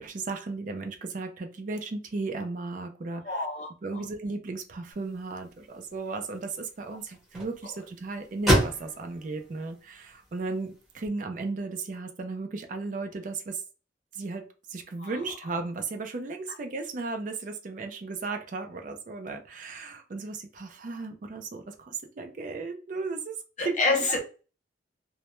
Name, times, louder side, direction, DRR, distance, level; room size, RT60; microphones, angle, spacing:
voice 1, 0.0-3.5 3.8-13.6 14.1-23.4 23.6-23.8, right 3 dB, 45° right, 5 dB, 0.4 m, -35 dB
voice 2, 3.2-4.1 15.0-15.2 23.6-24.2, left 3 dB, 40° left, 2 dB, 0.7 m, -28 dB
sound 1, 4.9-11.1, equal, ahead, 0.8 m, -32 dB
2.1 x 2.0 x 2.9 m, 0.34 s
head